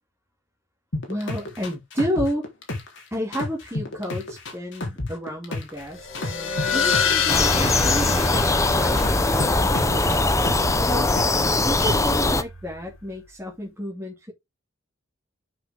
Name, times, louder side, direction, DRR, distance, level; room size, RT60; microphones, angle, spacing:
sound 1, 0.9-3.0 3.3-5.8 6.1-8.6 9.0-11.5 11.8-12.2, left 2 dB, 60° left, 3.7 m, -30 dB
voice 1, 1.1-2.5 3.1-10.3 10.8-11.1 11.6-14.3, equal, 10° right, 2.9 m, -31 dB
sound 2, 5.9-13.0, left 5 dB, 85° left, 2.5 m, -28 dB
sound 3, 7.3-12.4, left 2 dB, 15° left, 0.8 m, -21 dB
8.5 x 6.7 x 3.6 m
head